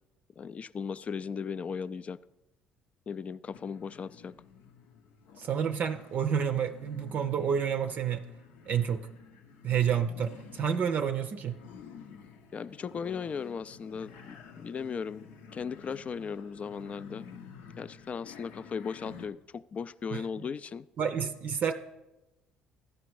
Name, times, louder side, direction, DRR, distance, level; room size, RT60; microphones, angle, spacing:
voice 1, 0.4-2.2 3.1-4.3 12.5-17.3 17.8-20.9, left 6 dB, 40° left, 15 dB, 0.3 m, -37 dB
sound 1, 3.5-19.3, left 6 dB, 80° left, 0.7 m, -51 dB
voice 2, 5.4-8.2 8.7-9.1 9.6-11.6 20.1-20.2 21.0-21.7, right 8 dB, 55° right, 8 dB, 0.5 m, -29 dB
13.5 x 5.1 x 4.7 m, 0.98 s
hypercardioid pair, 60°, 3 cm